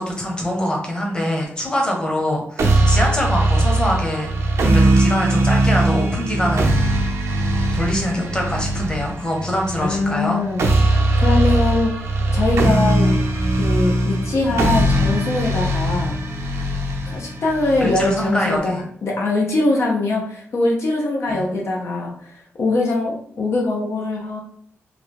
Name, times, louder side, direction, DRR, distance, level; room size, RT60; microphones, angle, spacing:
voice 1, 0.0-7.0 7.7-10.4 17.8-18.8 21.3-21.5, equal, 20° left, 0 dB, 0.9 m, -24 dB
sound 1, 2.6-18.6, right 1 dB, 80° right, 0.7 m, -20 dB
voice 2, 9.8-10.6 11.2-12.0 12.3-13.2 13.6-16.2 17.1-24.4, left 2 dB, 65° left, -1 dB, 0.7 m, -22 dB
3.3 x 2.3 x 3.6 m, 0.62 s
cardioid pair, 95°, 5 cm